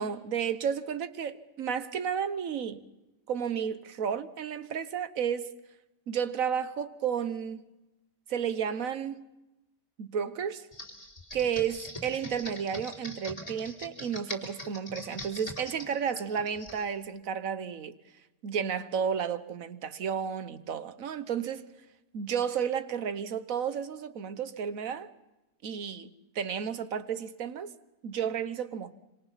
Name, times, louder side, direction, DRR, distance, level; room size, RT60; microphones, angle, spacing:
voice 1, 0.0-2.8 3.3-5.5 6.1-7.7 8.3-9.2 10.0-10.7 11.3-17.9 18.4-21.7 22.1-25.1 25.6-27.7 28.0-29.0, right 7 dB, 60° right, 1.4 m, -32 dB
Computer keyboard, 10.7-16.8, left 1 dB, 20° left, 3.8 m, -42 dB
26.5 x 26.0 x 5.8 m
omnidirectional pair, 1.7 m